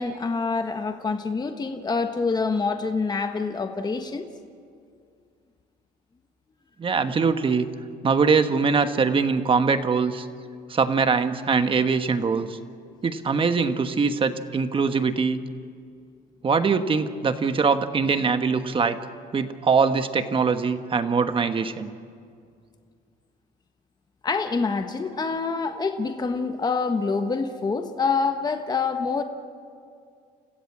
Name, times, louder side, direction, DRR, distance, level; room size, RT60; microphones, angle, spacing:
voice 1, 0.0-4.3 24.2-29.2, left 4 dB, 25° left, 6 dB, 1.3 m, -26 dB
voice 2, 6.8-7.7 8.0-10.3 10.7-12.6 13.0-15.4 16.4-19.0 19.3-21.9, right 5 dB, 30° right, 9 dB, 1.3 m, -22 dB
29.5 x 15.5 x 7.4 m, 2.3 s
cardioid pair, 110°, 17 cm